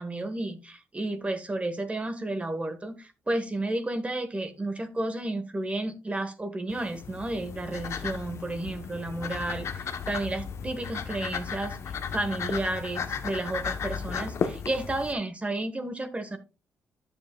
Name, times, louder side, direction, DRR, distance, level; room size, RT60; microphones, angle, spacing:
voice 1, 0.0-11.8 12.1-16.4, right 2 dB, 25° right, 8 dB, 1.3 m, -32 dB
sound 1, 6.7-15.1, left 6 dB, 60° left, 0.9 m, -35 dB
10.5 x 7.2 x 2.3 m, 0.30 s
supercardioid pair, 65°, 5 cm